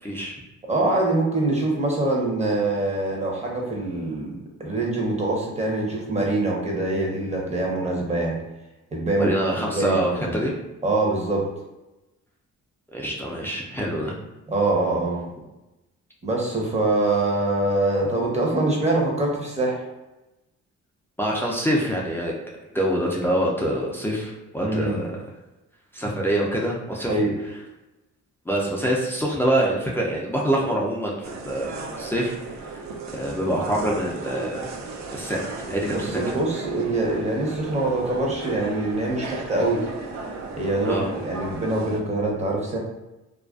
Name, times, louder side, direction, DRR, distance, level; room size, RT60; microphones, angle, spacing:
voice 1, 0.0-0.3 9.2-10.5 12.9-14.1 21.2-22.3 22.7-25.1 25.9-27.2 28.5-32.6 33.1-34.7 35.1-36.4 40.8-41.1, right 1 dB, 10° left, -3 dB, 0.4 m, -25 dB
voice 2, 0.7-8.4 8.9-9.3 9.7-10.3 10.8-11.5 14.5-15.2 16.2-19.8 24.6-25.0 27.1-27.3 35.9-39.8 40.6-42.8, right 2 dB, 20° right, -2 dB, 0.7 m, -24 dB
sound 1, 31.2-42.0, right 3 dB, 60° right, 0.5 m, -35 dB
2.4 x 2.2 x 2.3 m, 1.0 s
cardioid pair, 85°, 31 cm